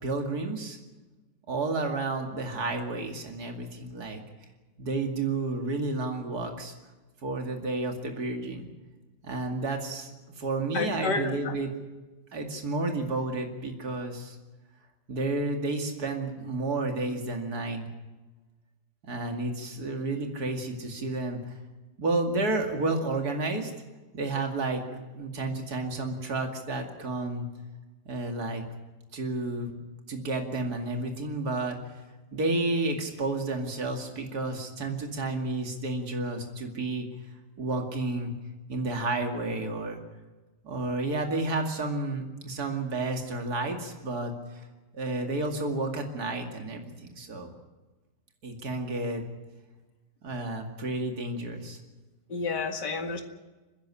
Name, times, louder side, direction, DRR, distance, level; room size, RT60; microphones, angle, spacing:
voice 1, 0.0-0.8 1.5-4.2 4.8-6.7 7.2-8.7 9.2-10.1 10.4-11.7 12.3-14.4 15.1-17.9 19.0-21.5 22.0-23.7 24.1-24.8 25.1-27.5 28.1-28.6 29.1-29.7 30.1-31.8 32.3-37.1 37.6-38.3 38.7-40.0 40.6-44.7 44.9-47.5 48.4-49.2 50.2-51.8, right 2 dB, 65° right, 3 dB, 2.9 m, -31 dB
voice 2, 10.7-11.6 52.3-53.2, left 4 dB, 85° left, 5 dB, 2.5 m, -30 dB
30.0 x 10.5 x 9.9 m, 1.2 s
omnidirectional pair, 1.8 m